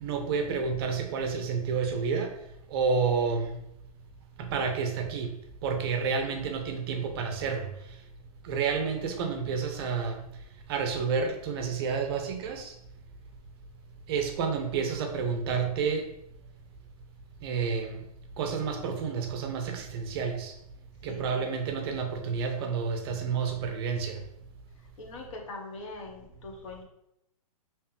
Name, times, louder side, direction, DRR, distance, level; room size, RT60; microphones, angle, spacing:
voice 1, 0.0-2.3 2.7-3.5 4.4-5.3 5.6-7.7 8.4-10.2 10.7-12.7 14.1-16.0 17.4-18.0 18.4-20.5 21.0-24.2, right 5 dB, 40° right, 4 dB, 0.5 m, -30 dB
voice 2, 21.1-21.6 25.0-26.8, left 3 dB, 50° left, 1 dB, 0.9 m, -42 dB
3.3 x 2.9 x 3.2 m, 0.80 s
hypercardioid pair, 140°, 20 cm